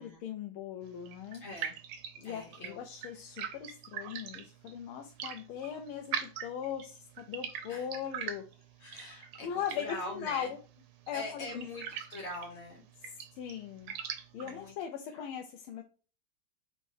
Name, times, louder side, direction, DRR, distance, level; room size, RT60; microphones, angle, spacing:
voice 1, 0.0-1.4 2.2-8.5 9.4-10.6 11.1-11.6 13.4-14.0 14.3-15.8, left 8 dB, 85° left, 4 dB, 1.5 m, -39 dB
sound 1, 0.8-14.7, right 8 dB, 85° right, 1.6 m, -44 dB
voice 2, 1.4-1.8 2.2-2.8 7.7-7.9 8.8-10.5 11.1-12.8 14.4-14.7 15.1-15.2, left 2 dB, 55° left, -1 dB, 0.7 m, -43 dB
4.1 x 2.7 x 4.6 m, 0.38 s
omnidirectional pair, 2.3 m